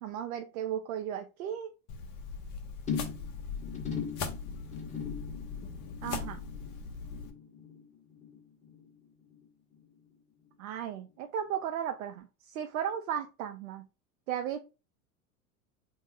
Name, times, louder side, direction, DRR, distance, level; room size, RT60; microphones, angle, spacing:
voice 1, 0.0-1.7 6.0-6.4 10.6-13.8 14.3-14.6, right 9 dB, 75° right, 6 dB, 0.6 m, -35 dB
sound 1, 1.9-7.3, left 5 dB, 45° left, 0.9 m, -40 dB
sound 2, 2.9-9.5 9.7-10.1 10.5-10.6, left 6 dB, 15° left, 1.2 m, -41 dB
3.1 x 2.0 x 3.6 m, 0.30 s
hypercardioid pair, 90°, 42 cm